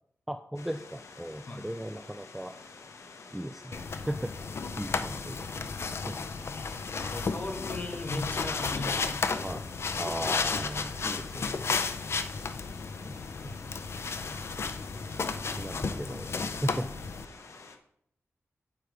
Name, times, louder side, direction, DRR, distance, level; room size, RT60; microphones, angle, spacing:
voice 1, 0.3-2.6 3.3-5.7 6.0-6.2 9.4-11.8 13.0-13.6 15.6-16.9, right 1 dB, 5° right, 8 dB, 0.3 m, -37 dB
sound 1, 0.5-17.8, left 4 dB, 75° left, 0.9 m, -49 dB
sound 2, 3.7-17.3, left 4 dB, 60° left, 0.5 m, -33 dB
voice 2, 4.9-5.2 7.0-9.2 14.9-15.6 16.7-16.8, left 2 dB, 35° left, 3 dB, 1.3 m, -38 dB
8.3 x 4.8 x 4.6 m, 0.70 s
wide cardioid pair, 145°, 5 cm